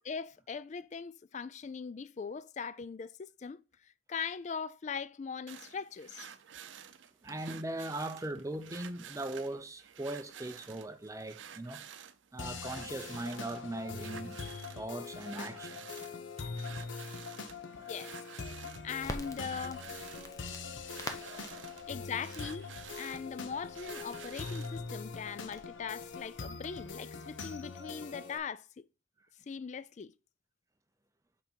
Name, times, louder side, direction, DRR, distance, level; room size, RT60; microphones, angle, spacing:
voice 1, 0.1-3.6 4.1-6.3 17.7-18.1 18.8-19.9 21.9-22.7 23.0-28.8 29.5-30.1, left 6 dB, 35° left, 0.3 m, -40 dB
sound 1, 5.5-24.8, right 8 dB, 75° right, 0.6 m, -51 dB
voice 2, 7.2-11.8 12.3-14.4 14.7-16.0 17.8-17.9 21.2-21.9, right 1 dB, 15° right, 0.6 m, -40 dB
sound 2, 12.4-28.4, left 4 dB, 80° left, 0.8 m, -43 dB
Crackle, 19.0-26.9, left 1 dB, 15° left, 0.7 m, -48 dB
5.7 x 5.2 x 4.5 m
head